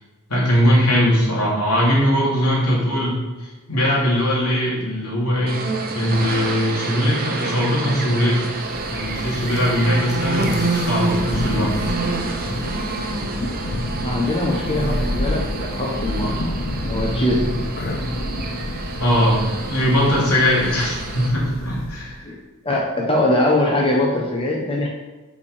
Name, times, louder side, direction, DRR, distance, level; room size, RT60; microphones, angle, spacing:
voice 1, 0.3-5.6 5.9-8.4 8.9-11.8 12.4-12.5 19.0-22.3, equal, 85° left, -5 dB, 2.9 m, -20 dB
sound 1, 5.5-21.3, right 3 dB, 45° right, 1.0 m, -28 dB
Thunder, 8.5-22.2, left 1 dB, 45° left, 0.7 m, -28 dB
voice 2, 14.0-16.5 16.8-17.6 22.2-22.4 22.6-24.9, left 1 dB, 25° left, -2 dB, 1.1 m, -22 dB
5.7 x 5.2 x 6.7 m, 1.2 s
head